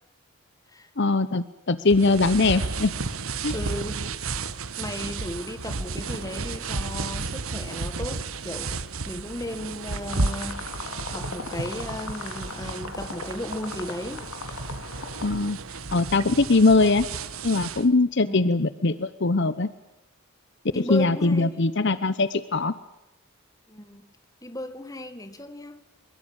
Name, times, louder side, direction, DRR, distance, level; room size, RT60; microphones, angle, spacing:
voice 1, 1.0-2.9 3.4-3.5 15.2-15.6 15.9-17.1 17.4-19.7 20.8-22.7, left 3 dB, 50° left, 0.8 m, -21 dB
sound 1, 1.9-17.9, right 3 dB, 75° right, 1.4 m, -33 dB
voice 2, 3.5-4.1 4.8-8.7 9.1-10.7 11.1-14.3 18.2-18.6 20.7-21.6 23.7-24.1 24.4-25.8, left 1 dB, 15° left, 1.8 m, -35 dB
sound 2, 10.1-15.2, left 4 dB, 90° left, 3.5 m, -38 dB
23.5 x 22.5 x 8.9 m
head